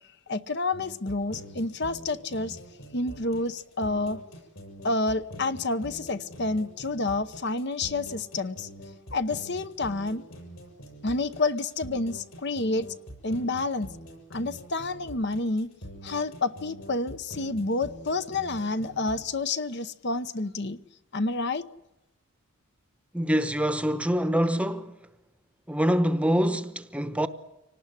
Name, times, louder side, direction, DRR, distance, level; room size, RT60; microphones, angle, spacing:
voice 1, 0.3-2.6 2.9-4.2 4.8-8.7 9.1-10.2 11.0-12.9 13.2-13.9 14.3-15.7 16.0-20.8 21.1-21.7, left 2 dB, 50° left, 0.8 m, -29 dB
sound 1, 0.7-19.2, equal, 65° left, 7.4 m, -44 dB
voice 2, 23.1-25.0 25.7-27.3, equal, 5° right, 0.9 m, -25 dB
25.5 x 19.0 x 10.0 m
head